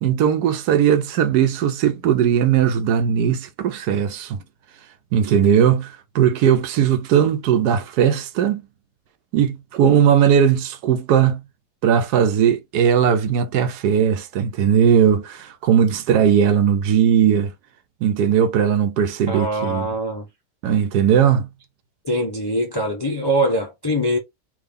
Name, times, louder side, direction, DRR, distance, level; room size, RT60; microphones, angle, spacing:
voice 1, 0.0-4.4 5.1-8.6 9.3-11.4 11.8-17.5 18.0-19.9 20.6-21.5, right 8 dB, 75° right, 1.1 m, -18 dB
voice 2, 19.3-20.3 22.0-24.2, right 1 dB, 35° left, 0.3 m, -23 dB
3.6 x 2.7 x 3.3 m
omnidirectional pair, 1.8 m